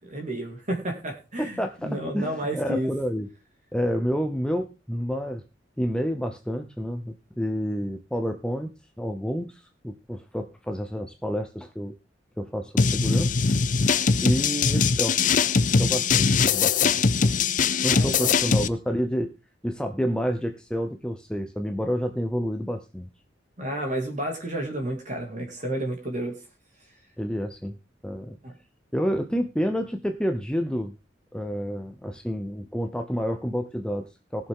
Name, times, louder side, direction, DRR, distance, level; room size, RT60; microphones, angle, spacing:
voice 1, 0.0-2.9 17.9-18.6 23.6-26.4 28.4-28.5, right 1 dB, 40° right, 2 dB, 2.4 m, -31 dB
voice 2, 1.4-3.3 3.7-5.4 5.8-8.7 9.0-11.9 12.4-13.4 14.2-15.2 15.8-17.0 17.2-17.3 17.8-19.3 19.6-23.1 27.2-27.7 28.0-28.4 28.9-30.9 31.3-34.5, equal, 5° left, 6 dB, 0.8 m, -29 dB
sound 1, 12.8-18.7, left 5 dB, 45° left, 0.6 m, -21 dB
19.0 x 7.0 x 3.7 m, 0.28 s
head